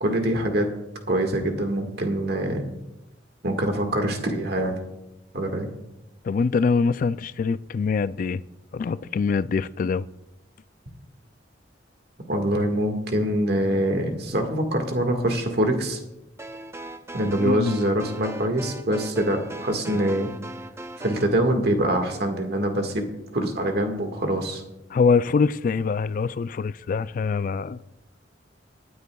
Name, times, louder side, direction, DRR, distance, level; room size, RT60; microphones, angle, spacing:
voice 1, 0.0-0.7 1.1-2.6 3.4-4.8 5.3-5.7 12.3-16.0 17.1-20.3 21.0-23.1 23.3-24.6, right 1 dB, 60° right, 1.7 m, -24 dB
voice 2, 6.2-8.4 8.7-10.1 17.3-17.8 24.9-27.8, left 5 dB, 45° left, 0.3 m, -24 dB
sound 1, 16.4-21.3, right 2 dB, 15° right, 0.6 m, -39 dB
24.5 x 9.5 x 2.3 m
head